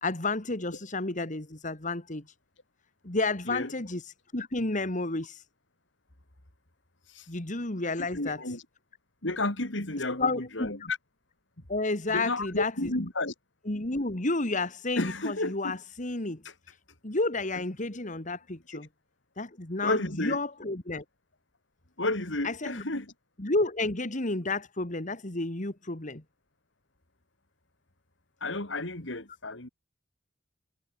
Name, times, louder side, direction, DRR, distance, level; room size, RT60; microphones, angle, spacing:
voice 1, 0.0-2.2 3.0-4.0 4.3-5.4 7.3-8.4 10.2-10.7 11.7-12.9 13.7-16.4 17.0-18.9 19.4-21.0 22.4-22.8 23.4-26.2, left 2 dB, 45° left, 2.3 m, -31 dB
voice 2, 8.0-8.6 9.2-11.0 12.1-13.3 15.0-15.8 16.4-16.5 18.7-18.8 19.8-20.4 22.0-23.1 28.4-29.7, left 2 dB, 80° left, 3.9 m, -32 dB
head